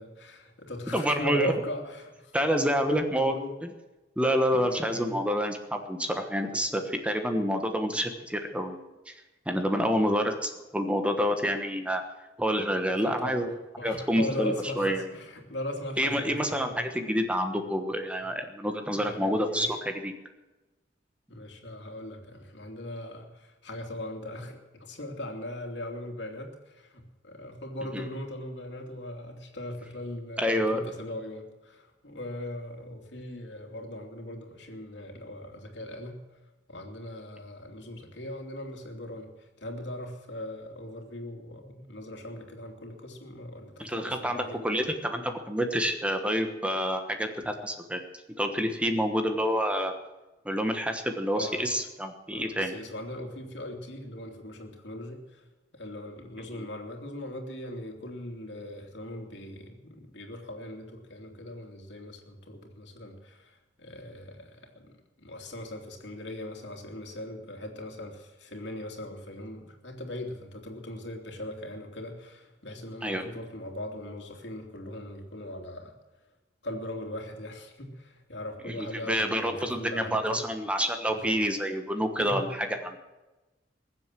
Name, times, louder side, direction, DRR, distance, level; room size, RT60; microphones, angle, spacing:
voice 1, 0.0-2.4 2.9-3.5 4.5-5.2 10.0-10.2 13.0-16.8 18.9-19.8 21.3-36.2 36.7-44.8 51.4-51.7 52.3-55.4 55.7-75.9 76.6-80.5 81.0-81.4 82.2-82.5, left 1 dB, 75° left, 2 dB, 2.9 m, -39 dB
voice 2, 0.9-1.5 2.3-3.3 4.2-8.8 9.1-9.2 9.5-12.0 12.4-13.5 13.8-15.1 16.0-20.1 30.4-30.8 43.8-48.0 48.4-49.9 50.4-52.8 73.0-73.2 78.7-83.0, equal, 5° right, 5 dB, 1.2 m, -28 dB
21.0 x 7.9 x 7.6 m, 1.1 s
head